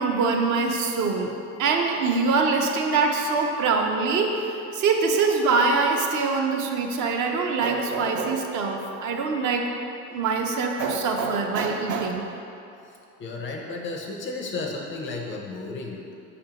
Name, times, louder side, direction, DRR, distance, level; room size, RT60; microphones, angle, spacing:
voice 1, 0.0-1.3 1.6-9.7 10.1-12.2, right 4 dB, 50° right, 2 dB, 0.5 m, -24 dB
voice 2, 13.2-16.0, left 3 dB, 30° left, 1 dB, 0.4 m, -33 dB
5.0 x 2.5 x 2.8 m, 2.7 s
hypercardioid pair, 80°, 39 cm